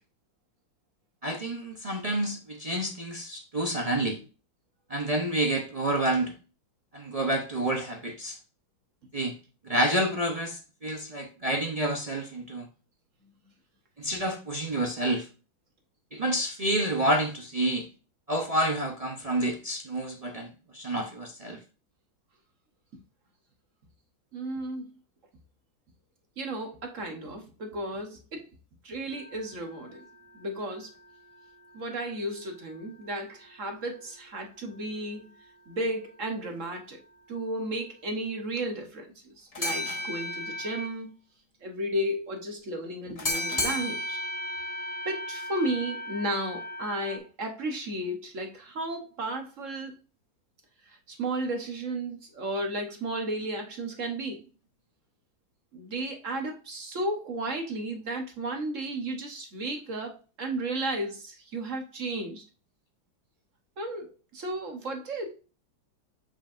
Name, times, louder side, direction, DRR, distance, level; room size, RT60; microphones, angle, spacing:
voice 1, 1.2-4.2 4.9-6.3 6.9-8.4 9.1-9.3 9.7-12.6 14.0-15.3 16.1-17.9 18.3-21.6, right 1 dB, 70° right, 0.3 m, -29 dB
voice 2, 24.3-24.9 26.4-28.4 28.8-30.0 30.3-30.9 31.7-35.3 35.7-37.0 37.3-41.1 41.6-44.2 45.0-49.9 50.9-54.4 55.7-62.4 63.8-65.3, right 1 dB, 50° right, 1.2 m, -34 dB
sound 1, 29.1-32.4 32.7-32.8 39.5-41.0 43.2-47.2, left 1 dB, 25° left, 0.8 m, -35 dB
7.1 x 5.5 x 2.5 m
omnidirectional pair, 2.1 m